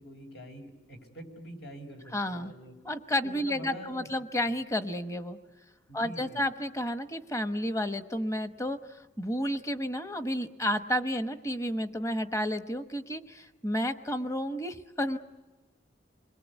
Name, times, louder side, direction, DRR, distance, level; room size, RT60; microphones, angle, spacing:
voice 1, 0.0-2.8 3.2-4.1 4.5-4.6 5.9-6.5, equal, 70° left, 4 dB, 5.1 m, -46 dB
voice 2, 2.1-2.5 2.8-5.4 5.9-8.8 9.2-15.2, equal, 15° left, 9 dB, 1.0 m, -31 dB
29.0 x 22.0 x 8.2 m, 1.2 s
head